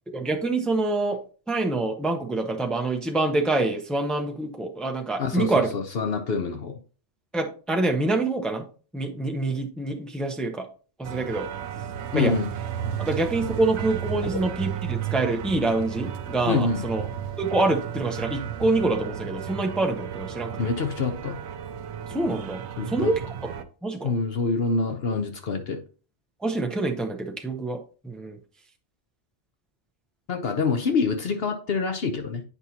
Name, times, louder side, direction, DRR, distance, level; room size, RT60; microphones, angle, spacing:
voice 1, 0.1-1.2 1.5-5.7 7.3-8.7 8.9-10.7 11.0-11.5 12.1-12.3 13.0-17.0 17.4-20.5 22.1-22.6 22.9-23.2 23.8-24.1 26.4-27.8 28.0-28.4, right 2 dB, ahead, 3 dB, 0.7 m, -26 dB
voice 2, 5.2-6.8 12.1-12.5 16.5-16.9 20.6-21.4 22.8-23.1 24.0-25.8 30.3-32.4, left 4 dB, 60° left, 5 dB, 1.0 m, -26 dB
sound 1, 11.0-23.6, right 9 dB, 80° right, 0.9 m, -34 dB
8.4 x 5.4 x 2.8 m, 0.38 s
omnidirectional pair, 1.1 m